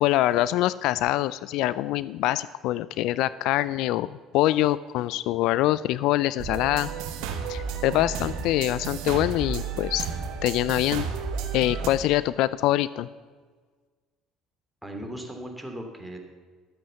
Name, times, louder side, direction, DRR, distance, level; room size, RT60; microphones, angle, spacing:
voice 1, 0.0-6.9 7.5-10.0 10.4-11.1 11.5-13.1, left 15 dB, 70° left, 18 dB, 0.3 m, -24 dB
sound 1, 6.4-11.9, right 6 dB, 75° right, 1.6 m, -32 dB
voice 2, 14.8-16.2, right 1 dB, 5° right, 2 dB, 2.9 m, -37 dB
12.5 x 8.8 x 7.1 m, 1.5 s
supercardioid pair, 80°, 0 cm